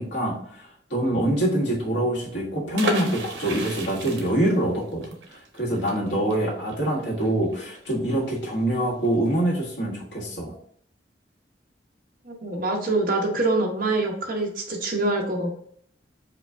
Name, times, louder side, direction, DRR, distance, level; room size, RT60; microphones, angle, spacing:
voice 1, 0.0-5.0 5.5-10.5, right 1 dB, 80° left, -3 dB, 1.5 m, -25 dB
sound 1, 2.7-8.4 8.7-8.8 9.0-9.3, right 1 dB, 85° right, 0.9 m, -33 dB
voice 2, 12.2-15.5, right 2 dB, 50° right, 1 dB, 1.0 m, -25 dB
5.0 x 2.4 x 3.5 m, 0.63 s
head